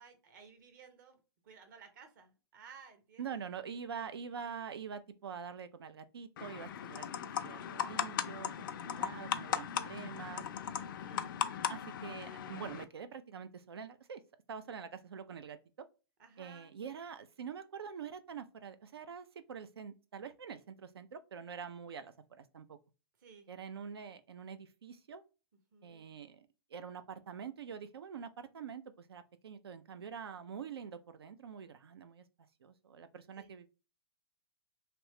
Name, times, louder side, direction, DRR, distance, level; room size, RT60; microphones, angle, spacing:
voice 1, 0.0-3.4 11.0-11.3 16.2-16.7 23.2-23.5 25.7-26.1 33.3-33.5, right 6 dB, 50° right, 1.0 m, -57 dB
voice 2, 3.2-7.1 7.4-10.4 11.7-14.2 14.5-15.6 16.4-22.8 23.5-25.2 25.8-32.2 32.6-33.7, right 7 dB, 70° right, 0.5 m, -45 dB
sound 1, 6.4-12.8, left 8 dB, 55° left, 0.4 m, -38 dB
3.0 x 2.9 x 3.1 m
figure-of-eight pair, 115°, 13 cm